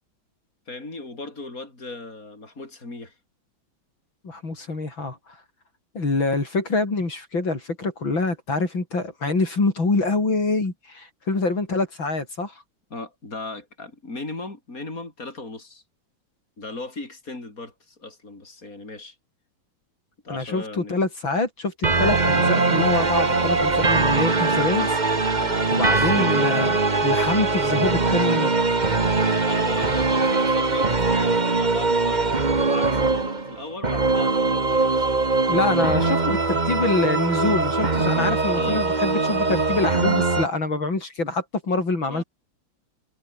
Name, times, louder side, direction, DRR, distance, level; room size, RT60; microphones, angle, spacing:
voice 1, 0.7-3.1 12.9-15.8 16.6-19.2 20.2-21.0 25.4-26.5 29.5-35.1 35.6-36.2 38.1-38.9 42.1-42.2, left 3 dB, 40° left, 6.4 m, -37 dB
voice 2, 4.2-5.4 5.9-12.6 20.3-25.0 25.7-28.6 35.5-42.2, left 3 dB, 70° left, 6.1 m, -25 dB
sound 1, 21.8-40.5, right 3 dB, 25° right, 1.7 m, -21 dB
omnidirectional pair, 2.2 m